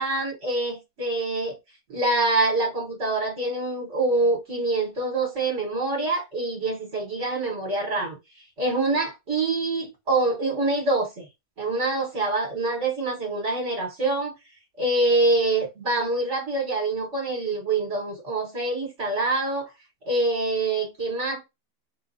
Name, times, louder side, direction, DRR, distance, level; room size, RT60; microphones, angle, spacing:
voice 1, 0.0-1.6 1.9-8.2 8.6-11.3 11.6-14.3 14.8-19.7 20.1-21.4, right 2 dB, 55° right, 1.5 m, -25 dB
3.6 x 2.5 x 2.6 m
omnidirectional pair, 1.5 m